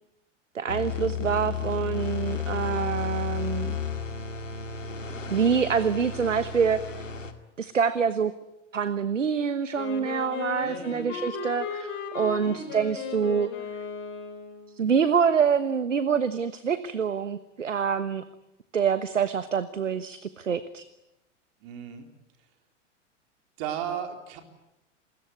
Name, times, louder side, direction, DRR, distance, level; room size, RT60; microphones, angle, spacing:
voice 1, 0.5-3.8 5.3-7.1 7.6-8.3 8.7-11.9 12.1-13.5 14.7-18.2 18.7-20.9, right 6 dB, 80° right, 14 dB, 1.2 m, -26 dB
sound 1, 0.7-7.3, left 7 dB, 80° left, 2.2 m, -33 dB
Wind instrument woodwind instrument, 9.7-14.8, left 5 dB, 30° left, 5.4 m, -36 dB
voice 2, 10.6-11.1 12.4-12.8 21.6-22.1 23.6-24.4, right 9 dB, 45° right, 5 dB, 4.0 m, -35 dB
28.0 x 21.0 x 9.5 m, 0.91 s
figure-of-eight pair, 95°, 37 cm